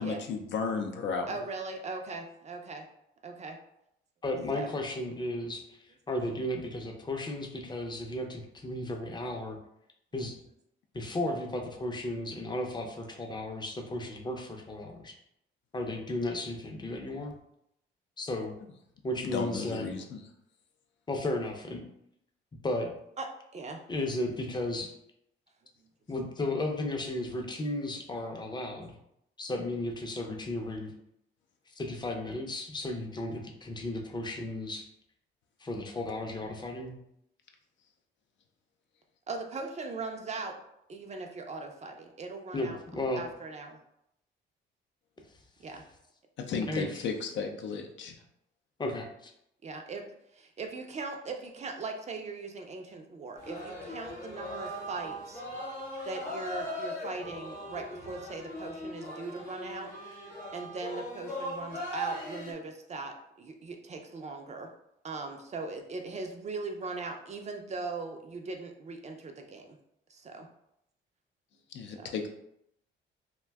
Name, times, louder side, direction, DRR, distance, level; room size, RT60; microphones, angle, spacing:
voice 1, 0.0-1.4 19.2-20.2 46.4-48.2 71.7-72.3, left 5 dB, 70° left, 4 dB, 0.5 m, -34 dB
voice 2, 1.3-2.8 3.2-3.6 4.5-4.7 23.2-23.3 23.5-23.8 39.3-40.6 40.9-42.8 43.2-43.8 45.6-45.8 46.8-46.9 49.6-50.0 50.3-55.4 56.0-59.9 60.5-64.7 65.0-69.8 70.1-70.5 71.9-72.1, right 3 dB, 35° right, 3 dB, 0.4 m, -39 dB
voice 3, 4.2-5.8 6.1-9.6 10.1-10.4 10.9-15.1 15.7-17.3 18.2-18.5 19.0-19.9 21.1-21.8 22.6-22.9 23.9-24.9 26.1-28.9 29.4-30.9 31.8-34.9 35.6-37.0 42.5-43.2 46.7-46.9 48.8-49.0, left 1 dB, 20° left, 2 dB, 0.5 m, -34 dB
sound 1, 53.4-62.5, equal, 40° left, 0.9 m, -39 dB
2.5 x 2.2 x 3.3 m, 0.78 s
cardioid pair, 90°, 20 cm